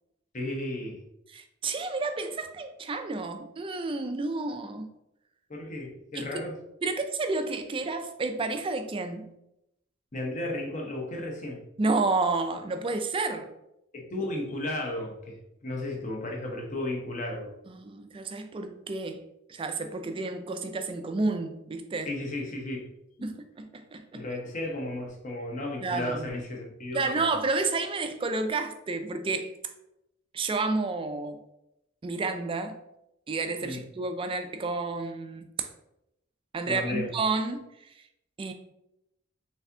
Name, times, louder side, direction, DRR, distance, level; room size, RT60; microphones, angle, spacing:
voice 1, 0.3-1.0 5.5-6.6 10.1-11.6 13.9-17.5 22.1-22.9 24.1-27.3 33.6-33.8 36.7-37.1, left 1 dB, 40° left, 1 dB, 0.8 m, -34 dB
voice 2, 1.3-4.9 6.1-6.4 6.8-9.3 11.8-13.5 17.7-19.2 19.5-22.1 23.2-24.2 25.8-26.3 26.9-29.5 30.3-31.4 32.0-32.8 33.3-35.5 36.5-37.6 38.4-38.5, right 3 dB, 25° right, 7 dB, 0.3 m, -30 dB
4.1 x 3.4 x 2.7 m, 0.83 s
head